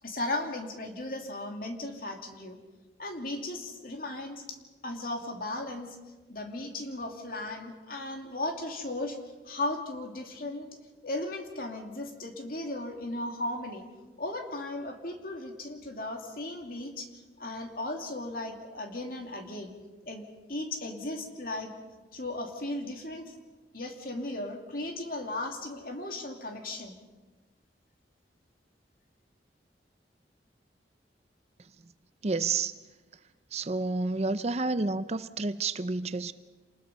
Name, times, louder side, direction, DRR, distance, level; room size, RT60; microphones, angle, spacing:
voice 1, 0.0-2.6 3.0-4.6 4.8-6.0 6.3-9.2 9.4-10.7 11.0-13.9 14.2-19.7 20.0-21.7 22.1-23.3 23.7-27.0, left 2 dB, 55° left, 2.7 m, -36 dB
voice 2, 32.2-32.7 33.5-36.3, right 3 dB, 35° right, 0.6 m, -30 dB
27.5 x 20.5 x 5.5 m
head